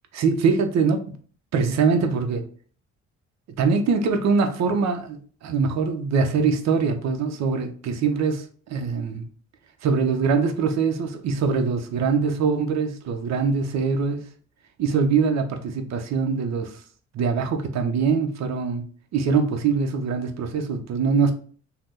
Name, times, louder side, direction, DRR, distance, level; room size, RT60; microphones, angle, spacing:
voice 1, 0.1-1.1 1.5-2.5 3.6-9.3 9.8-14.3 14.8-16.8 17.1-18.8 19.1-21.3, right 5 dB, 65° right, 0.6 m, -23 dB
2.8 x 2.0 x 3.5 m
cardioid pair, 90°, 30 cm